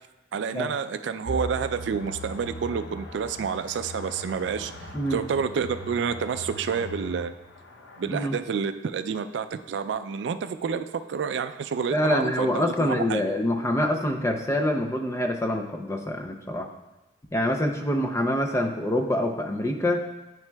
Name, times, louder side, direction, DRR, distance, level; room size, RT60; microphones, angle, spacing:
voice 1, 0.3-7.3 8.0-13.3, right 6 dB, 70° right, 10 dB, 0.3 m, -29 dB
sound 1, 1.2-8.0, equal, 80° left, 0.7 m, -39 dB
voice 2, 11.9-16.7 17.3-20.1, left 1 dB, 15° left, 3 dB, 0.5 m, -25 dB
9.1 x 5.8 x 2.2 m, 1.0 s
head